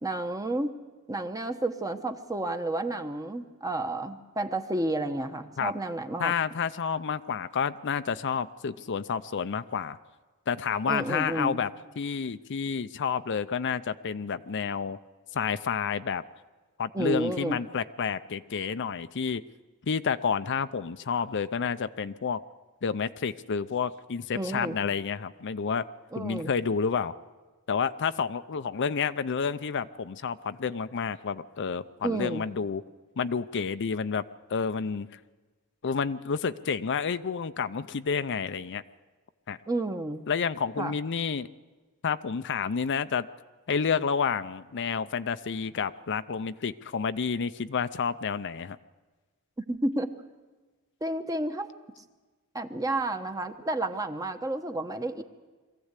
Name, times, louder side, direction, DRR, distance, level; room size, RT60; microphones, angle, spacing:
voice 1, 0.0-0.8 1.1-6.3 10.9-11.6 16.9-17.6 24.3-24.8 26.1-26.5 32.0-32.4 39.7-40.2 40.8-40.9 49.7-50.1 51.0-51.7 52.5-55.2, right 2 dB, 15° right, 7 dB, 1.0 m, -31 dB
voice 2, 6.2-10.0 10.5-11.7 12.0-15.0 15.3-16.2 16.8-19.4 19.8-22.4 22.8-25.8 26.2-27.1 27.7-32.8 33.2-34.2 34.5-35.1 35.8-38.8 39.5-39.6 40.3-41.5 42.0-43.3 43.7-48.8, left 6 dB, 55° left, 12 dB, 0.5 m, -30 dB
22.5 x 15.0 x 8.2 m, 1.3 s
head